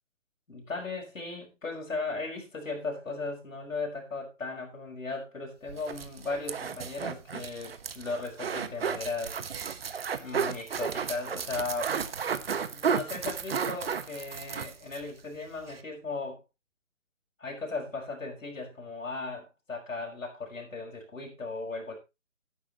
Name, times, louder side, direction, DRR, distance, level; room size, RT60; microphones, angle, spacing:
voice 1, 0.5-9.4 10.2-12.0 12.7-16.4 17.4-21.9, left 3 dB, 85° left, -1 dB, 5.9 m, -37 dB
sound 1, 5.7-15.0 15.4-15.5 15.7-15.8, right 6 dB, 50° right, 1.2 m, -33 dB
14.5 x 11.0 x 3.1 m, 0.26 s
hypercardioid pair, 160°, 38 cm